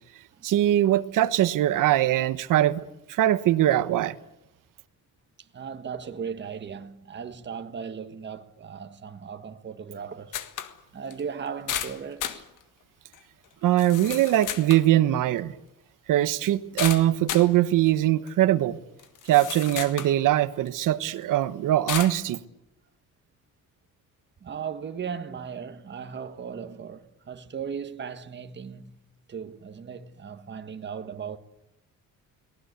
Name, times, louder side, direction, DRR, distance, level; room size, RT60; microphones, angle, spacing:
voice 1, 0.4-2.8 3.1-4.2 13.6-15.5 16.1-18.8 19.3-22.4, right 13 dB, 80° right, 1.2 m, -22 dB
voice 2, 5.4-10.4 10.9-12.5 24.4-29.0 29.3-31.4, right 7 dB, 35° right, 1.6 m, -37 dB
sound 1, 10.3-10.7 11.1-11.2 11.7-12.4 13.1-13.2 13.8-14.8 16.8-17.5 18.3-18.4 19.0-20.1 20.7-20.8 21.9-22.2, left 10 dB, 70° left, 1.8 m, -33 dB
30.0 x 19.5 x 8.2 m
cardioid pair, 135°, 31 cm